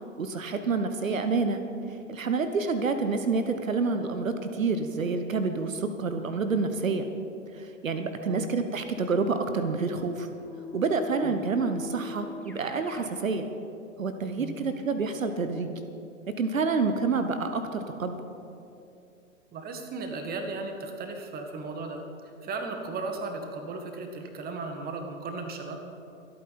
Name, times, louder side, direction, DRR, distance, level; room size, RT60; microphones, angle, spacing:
voice 1, 0.2-1.6 2.1-7.1 7.5-10.3 10.7-13.5 14.0-15.8 16.3-18.2, right 4 dB, 80° right, 8 dB, 1.1 m, -28 dB
Keyboard (musical), 10.5-13.2, left 2 dB, 5° left, 1.1 m, -41 dB
voice 2, 19.5-25.8, right 3 dB, 25° right, 5 dB, 1.8 m, -36 dB
25.0 x 8.8 x 4.3 m, 2.7 s
figure-of-eight pair, 105°, 39 cm